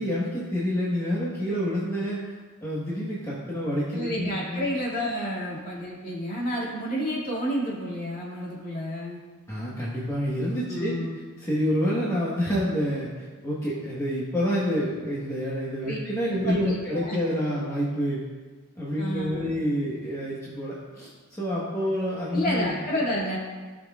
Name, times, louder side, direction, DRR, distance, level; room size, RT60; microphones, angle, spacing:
voice 1, 0.0-2.3 2.6-4.7 9.5-10.9 11.4-18.2 18.8-22.7, equal, 15° left, -8 dB, 1.3 m, -28 dB
voice 2, 3.9-9.2 10.7-11.2 15.8-16.0 16.3-17.2 19.0-19.5 22.3-23.4, equal, 35° left, -5 dB, 2.3 m, -30 dB
16.5 x 6.2 x 2.4 m, 1.4 s
head